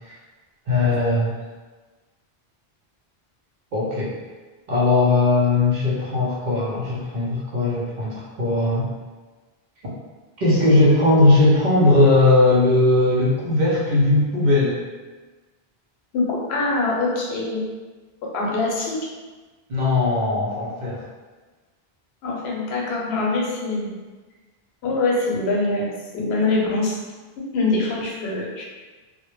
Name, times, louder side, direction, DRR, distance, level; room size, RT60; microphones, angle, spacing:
voice 1, 0.7-1.3 3.7-4.1 4.7-8.9 10.4-14.8 19.7-21.1, left 2 dB, 55° right, -6 dB, 0.7 m, -18 dB
voice 2, 16.1-17.7 18.2-19.0 22.2-24.0 24.8-27.0 27.5-28.6, left 3 dB, 85° left, -3 dB, 0.9 m, -24 dB
2.1 x 2.0 x 3.0 m, 1.3 s
omnidirectional pair, 1.0 m